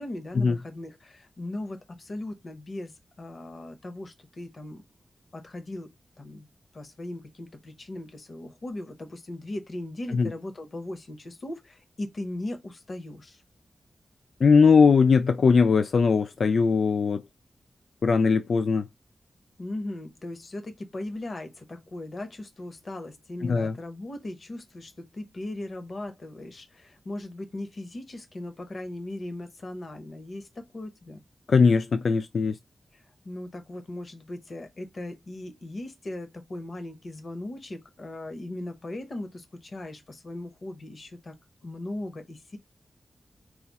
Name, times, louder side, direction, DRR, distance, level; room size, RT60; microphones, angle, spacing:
voice 1, 0.0-4.8 5.3-5.9 6.2-6.5 6.7-13.4 19.6-31.2 32.9-42.6, left 1 dB, 45° left, 0.8 m, -38 dB
voice 2, 14.4-17.2 18.0-18.9 23.4-23.7 31.5-32.6, left 5 dB, 65° left, 0.3 m, -20 dB
4.7 x 2.0 x 4.0 m
wide cardioid pair, 155°, 0 cm